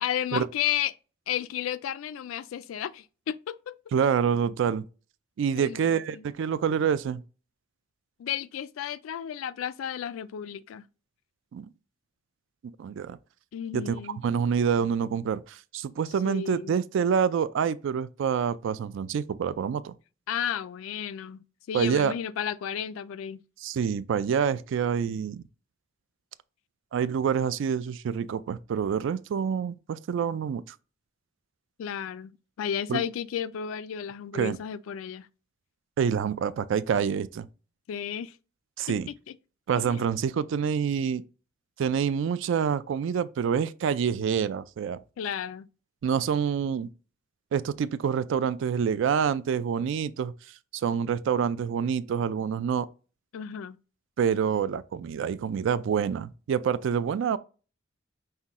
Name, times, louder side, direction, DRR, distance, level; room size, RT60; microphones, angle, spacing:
voice 1, 0.0-0.9 1.3-3.7 5.6-6.2 8.2-10.9 13.5-14.2 16.2-16.8 20.3-21.4 21.7-23.4 31.8-35.3 37.9-38.3 39.8-40.1 45.2-45.7 53.3-53.8, left 9 dB, 90° left, 0.3 m, -33 dB
voice 2, 3.9-4.9 5.4-7.2 11.5-11.7 12.8-13.2 13.7-19.9 21.7-22.1 23.6-25.4 26.9-30.6 32.9-33.0 34.3-34.6 36.0-37.5 38.8-39.1 39.7-41.2 41.8-45.0 46.0-46.9 47.5-50.3 50.7-52.9 54.2-57.4, right 7 dB, 65° right, 0.3 m, -27 dB
5.6 x 2.2 x 3.5 m
head